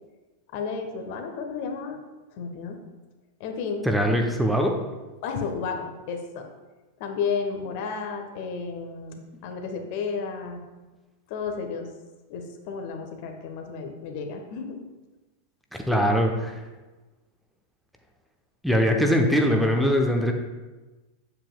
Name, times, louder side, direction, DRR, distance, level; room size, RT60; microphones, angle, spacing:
voice 1, 0.5-2.0 2.3-2.8 3.4-3.9 5.2-6.5 7.0-10.6 11.3-11.9 12.3-14.8 15.9-16.0, left 5 dB, 45° left, 5 dB, 1.0 m, -32 dB
voice 2, 3.8-4.7 15.9-16.6 18.6-20.3, equal, ahead, 2 dB, 0.8 m, -21 dB
8.8 x 7.8 x 2.3 m, 1.2 s
figure-of-eight pair, 90°, 0 cm